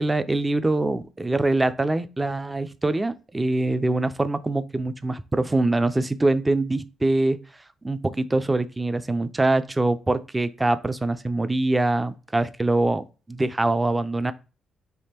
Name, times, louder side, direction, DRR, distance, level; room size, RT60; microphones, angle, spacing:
voice 1, 0.0-7.4 7.8-14.3, right 2 dB, 15° right, 0.4 m, -24 dB
3.5 x 2.9 x 4.2 m
cardioid pair, 90°, 0 cm